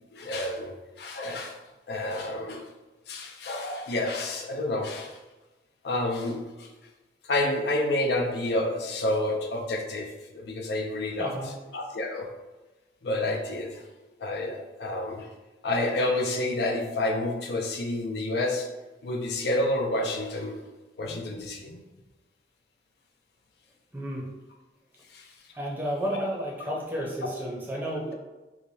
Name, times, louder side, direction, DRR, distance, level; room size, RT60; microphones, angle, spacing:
voice 1, 0.1-1.6 1.9-2.6 3.1-5.2 5.8-6.7 7.2-11.4 11.7-12.3 13.0-13.8 14.2-15.3 15.6-18.7 19.0-20.6 21.0-21.8 25.1-25.3 26.1-26.2, left 1 dB, 65° left, 2 dB, 0.5 m, -29 dB
voice 2, 11.2-11.5 23.9-24.3 25.5-28.1, equal, 10° right, -4 dB, 0.6 m, -32 dB
4.9 x 2.2 x 2.7 m, 1.1 s
head